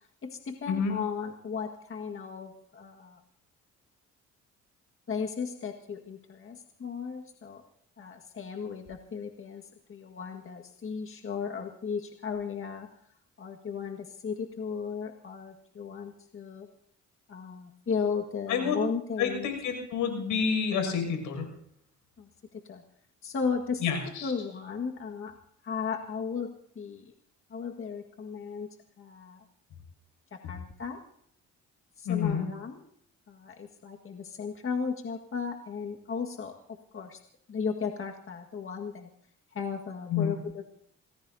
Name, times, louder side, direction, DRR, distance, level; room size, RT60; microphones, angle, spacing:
voice 1, 0.2-3.2 5.1-7.6 8.0-12.9 13.4-16.7 17.3-19.5 22.2-22.8 23.2-25.4 25.6-27.1 27.5-28.7 29.0-29.4 30.3-31.0 32.0-32.8 33.3-36.5 36.9-37.2 37.5-39.1 39.5-40.6, left 6 dB, 45° left, 3 dB, 1.8 m, -35 dB
voice 2, 18.5-18.9 19.2-21.5 23.8-24.3 32.0-32.5 40.1-40.3, left 6 dB, 85° left, 5 dB, 6.5 m, -28 dB
27.0 x 19.5 x 2.8 m, 0.69 s
cardioid pair, 90°, 30 cm